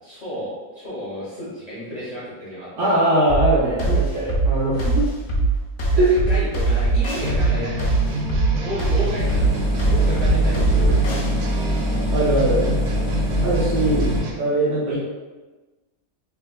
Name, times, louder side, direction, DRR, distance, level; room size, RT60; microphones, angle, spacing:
voice 1, 0.0-2.9 5.9-7.9 8.6-11.4 11.8-12.1, equal, 30° left, -10 dB, 0.8 m, -32 dB
voice 2, 2.8-5.1 6.0-6.2 10.4-10.9 12.1-12.7 13.4-15.0, right 1 dB, 60° right, -7 dB, 0.9 m, -21 dB
sound 1, 3.3-11.3, right 3 dB, 65° left, 1.0 m, -21 dB
sound 2, 7.1-14.3, equal, 85° right, 0.5 m, -28 dB
Engine, 9.2-14.2, equal, 20° right, 0.6 m, -24 dB
3.4 x 2.7 x 2.2 m, 1.2 s
omnidirectional pair, 1.7 m